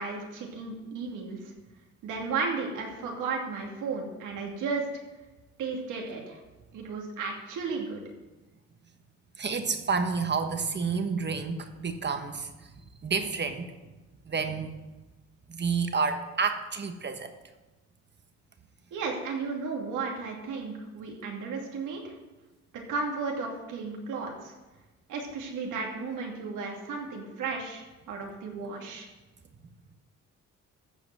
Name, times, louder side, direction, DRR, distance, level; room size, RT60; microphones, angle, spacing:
voice 1, 0.0-1.5 2.0-4.9 5.6-6.4 6.7-8.0 18.9-22.1 22.9-24.5 25.1-29.1, right 4 dB, 85° right, 0 dB, 2.7 m, -34 dB
voice 2, 9.4-12.7 13.0-13.7 14.3-14.7 15.5-17.3, right 5 dB, 35° right, 7 dB, 1.3 m, -29 dB
13.5 x 4.9 x 7.7 m, 1.1 s
cardioid pair, 90°, 30 cm